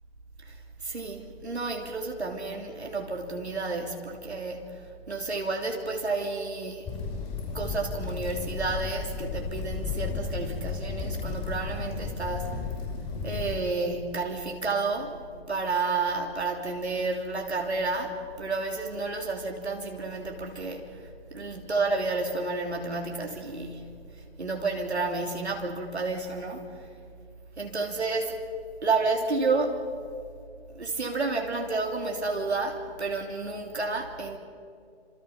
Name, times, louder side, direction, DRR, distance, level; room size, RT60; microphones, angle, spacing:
voice 1, 0.4-6.9 7.4-12.7 13.2-15.2 15.5-26.9 27.6-28.4 28.8-29.8 30.7-34.4, right 3 dB, 75° right, 3.2 m, -31 dB
sound 1, 6.8-13.6, left 4 dB, 15° left, 6.1 m, -33 dB
29.5 x 26.5 x 5.8 m
figure-of-eight pair, 130°, 33 cm